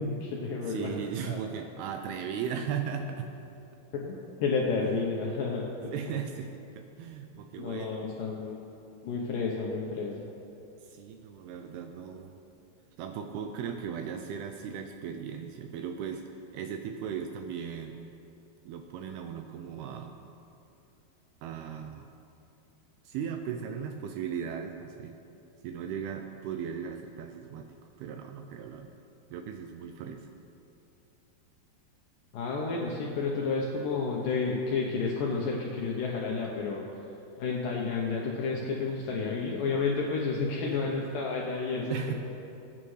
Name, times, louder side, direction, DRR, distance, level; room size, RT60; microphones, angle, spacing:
voice 1, 0.0-1.4 3.9-5.9 7.6-8.6 9.0-10.3 32.3-37.1 37.4-42.1, left 4 dB, 75° left, -2 dB, 2.0 m, -31 dB
voice 2, 0.7-3.3 4.8-5.0 5.8-8.1 10.8-12.4 13.0-18.0 18.6-20.2 21.4-22.1 23.0-25.2 25.6-27.7 28.0-29.0 29.3-30.3 40.6-41.0 41.9-42.1, right 7 dB, 80° right, 5 dB, 2.3 m, -37 dB
21.5 x 9.1 x 3.2 m, 2.8 s
omnidirectional pair, 5.0 m